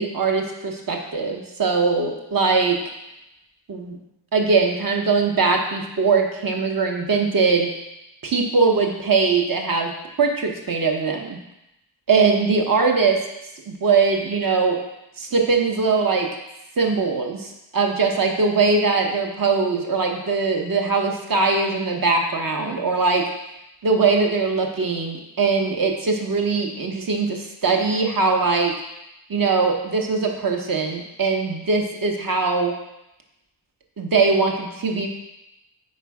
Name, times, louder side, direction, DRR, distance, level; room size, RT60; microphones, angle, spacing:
voice 1, 0.0-2.8 3.7-4.0 4.3-7.7 8.2-9.9 10.2-11.4 12.1-13.2 13.7-14.8 15.2-16.3 16.8-23.2 23.8-28.7 29.3-32.7 34.0-35.1, right 4 dB, 45° right, 2 dB, 0.8 m, -21 dB
5.0 x 4.2 x 4.7 m, 0.89 s
wide cardioid pair, 145°, 47 cm